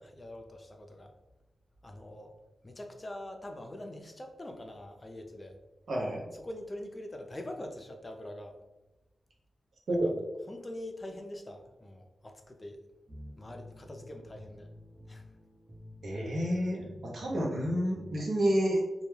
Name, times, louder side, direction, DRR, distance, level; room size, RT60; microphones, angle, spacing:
voice 1, 0.0-1.1 1.8-2.3 2.6-5.5 6.3-8.6 9.9-10.1 10.5-12.8 13.4-14.7 15.1-15.3, left 1 dB, 35° left, 4 dB, 0.4 m, -44 dB
voice 2, 5.9-6.2 9.9-10.1 16.0-18.8, equal, 75° right, -3 dB, 0.7 m, -29 dB
sound 1, 13.1-18.3, left 1 dB, 30° right, 0.8 m, -50 dB
2.3 x 2.1 x 3.1 m, 1.0 s
cardioid pair, 45°, 0 cm